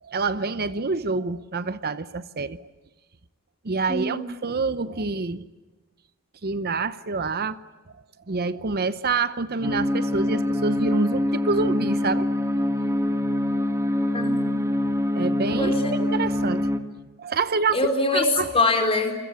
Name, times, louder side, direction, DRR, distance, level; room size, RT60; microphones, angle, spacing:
voice 1, 0.0-2.6 3.6-5.5 6.4-7.6 8.3-12.3 15.1-15.7 16.1-16.7 17.2-17.8 18.1-18.5, right 4 dB, 45° right, 0.8 m, -27 dB
voice 2, 3.9-4.3 14.1-14.6 15.6-16.0 17.7-19.1, left 2 dB, 25° left, 4.3 m, -23 dB
sound 1, 9.6-16.8, left 1 dB, 15° right, 2.0 m, -24 dB
29.0 x 22.5 x 8.4 m
head